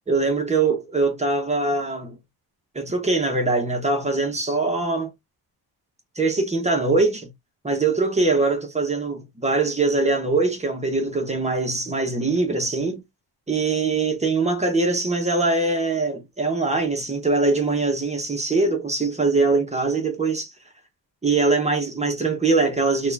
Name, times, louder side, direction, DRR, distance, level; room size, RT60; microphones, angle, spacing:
voice 1, 0.1-2.2 2.7-5.1 6.1-7.3 7.6-13.0 13.5-20.5 21.2-23.1, right 3 dB, 15° right, 1.1 m, -22 dB
3.8 x 2.5 x 3.4 m
cardioid pair, 130°, 39 cm